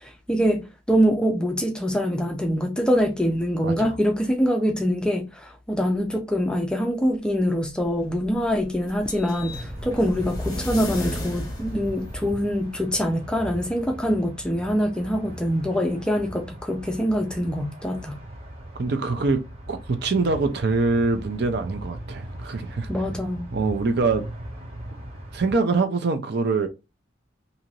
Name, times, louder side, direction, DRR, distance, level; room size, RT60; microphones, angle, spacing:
voice 1, 0.0-18.2 22.9-23.5, equal, 5° left, 0.4 m, -24 dB
voice 2, 3.6-4.0 18.8-22.9 23.5-24.3 25.3-26.7, right 3 dB, 55° right, 0.5 m, -24 dB
sound 1, 7.6-12.7, left 1 dB, 20° left, 1.0 m, -34 dB
sound 2, 9.4-25.5, right 1 dB, 30° right, 0.9 m, -39 dB
2.7 x 2.5 x 2.9 m
head